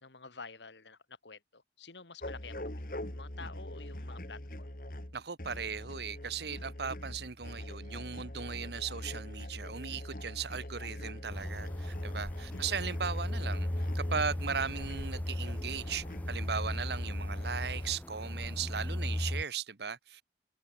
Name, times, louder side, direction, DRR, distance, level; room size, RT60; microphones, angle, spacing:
voice 1, 0.0-4.7 12.5-12.9, left 4 dB, 85° left, 2.4 m, -50 dB
sound 1, 2.2-18.0, left 1 dB, 50° left, 2.7 m, -43 dB
voice 2, 5.1-13.7 13.9-20.2, right 6 dB, 70° right, 1.0 m, -37 dB
sound 2, 11.3-19.4, left 1 dB, 10° left, 0.4 m, -36 dB
head